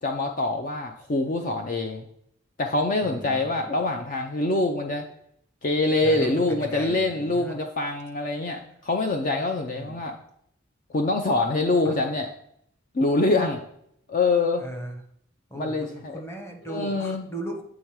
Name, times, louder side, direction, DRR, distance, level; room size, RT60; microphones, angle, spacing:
voice 1, 0.0-2.1 2.6-5.1 5.6-10.2 10.9-12.3 12.9-13.6 14.1-14.6 15.5-16.2 16.7-17.3, left 2 dB, 45° left, 4 dB, 0.5 m, -25 dB
voice 2, 3.0-3.7 6.0-7.6 9.7-10.0 11.8-12.0 14.6-15.0 15.5-17.6, right 1 dB, 15° left, 3 dB, 1.0 m, -37 dB
8.1 x 3.6 x 4.7 m, 0.71 s
head